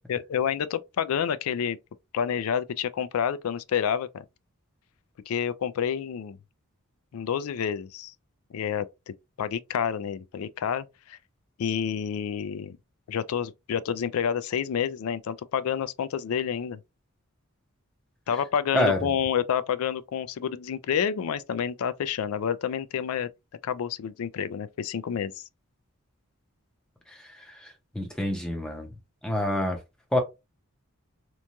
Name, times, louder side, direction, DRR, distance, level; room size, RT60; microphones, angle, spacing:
voice 1, 0.1-1.8 2.1-4.2 5.3-6.4 7.1-8.1 8.5-8.9 9.4-11.2 11.6-12.8 13.1-16.8 18.3-23.3 23.6-25.4, left 8 dB, 75° left, 0.3 m, -29 dB
voice 2, 27.1-28.9 29.2-29.8 30.1-30.2, left 1 dB, 5° left, 0.6 m, -27 dB
3.0 x 2.2 x 2.5 m
head